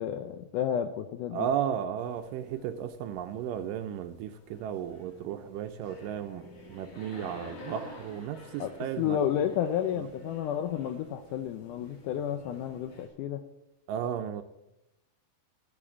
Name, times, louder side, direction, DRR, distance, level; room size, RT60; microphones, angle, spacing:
voice 1, 0.0-1.5 8.6-8.7 9.0-13.4, left 9 dB, 80° left, 8 dB, 1.9 m, -31 dB
voice 2, 1.3-9.2 10.0-10.1 13.9-14.4, right 9 dB, 80° right, 8 dB, 2.0 m, -34 dB
sound 1, 2.0-13.1, left 2 dB, 45° left, 3.0 m, -50 dB
13.5 x 5.0 x 8.4 m, 0.90 s
omnidirectional pair, 4.2 m